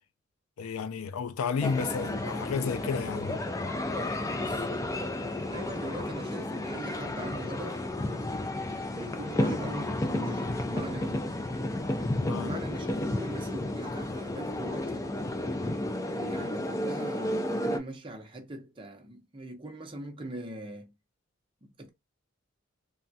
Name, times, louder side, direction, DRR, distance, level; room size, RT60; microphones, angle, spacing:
voice 1, 0.6-3.4 12.2-12.6, left 5 dB, 90° left, 0.4 m, -32 dB
sound 1, 1.6-17.8, left 1 dB, 15° left, 0.3 m, -32 dB
voice 2, 4.3-4.7 5.5-7.9 8.9-11.3 12.4-15.2 16.1-20.9 21.6-21.9, right 1 dB, 25° right, 0.6 m, -41 dB
3.4 x 2.1 x 2.6 m
head